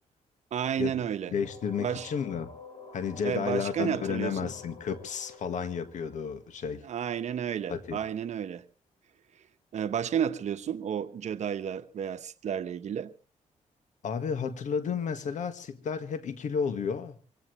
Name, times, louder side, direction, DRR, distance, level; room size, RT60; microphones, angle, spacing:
voice 1, 0.5-1.3 1.8-2.1 3.2-4.5 6.8-8.6 9.7-13.1, right 8 dB, 65° right, 1.1 m, -31 dB
voice 2, 1.3-2.5 2.9-6.8 7.7-8.0 14.0-17.2, left 6 dB, 70° left, 1.8 m, -32 dB
sound 1, 1.4-7.2, left 4 dB, 40° left, 6.1 m, -49 dB
23.5 x 17.5 x 3.3 m
cardioid pair, 90°, 13 cm